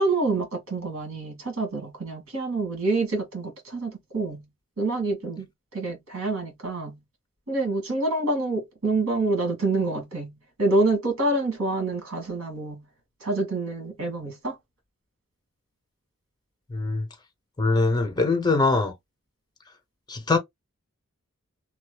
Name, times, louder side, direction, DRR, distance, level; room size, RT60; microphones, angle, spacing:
voice 1, 0.0-4.4 4.8-5.5 5.7-7.0 7.5-10.3 10.6-12.8 13.2-14.6, right 2 dB, 90° right, 1.8 m, -27 dB
voice 2, 16.7-17.1 17.6-18.9 20.1-20.4, left 3 dB, 20° left, 0.9 m, -22 dB
3.1 x 2.1 x 3.3 m
head